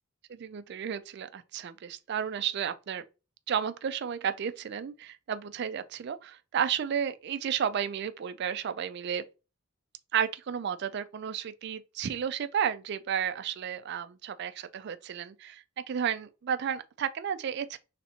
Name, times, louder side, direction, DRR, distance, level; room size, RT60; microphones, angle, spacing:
voice 1, 0.3-3.0 3.5-9.2 10.1-17.8, right 8 dB, 50° right, 0.3 m, -32 dB
3.3 x 2.8 x 4.1 m
head